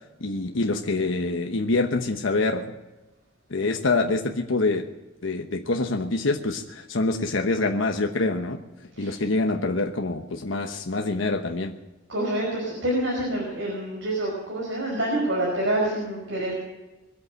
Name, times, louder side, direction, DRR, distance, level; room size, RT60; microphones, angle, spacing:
voice 1, 0.2-2.7 3.5-4.9 5.2-8.6 9.0-11.8, left 3 dB, 90° left, 3 dB, 1.1 m, -25 dB
voice 2, 12.1-16.5, right 1 dB, 75° right, -2 dB, 5.4 m, -27 dB
22.5 x 8.4 x 7.6 m, 1.1 s
head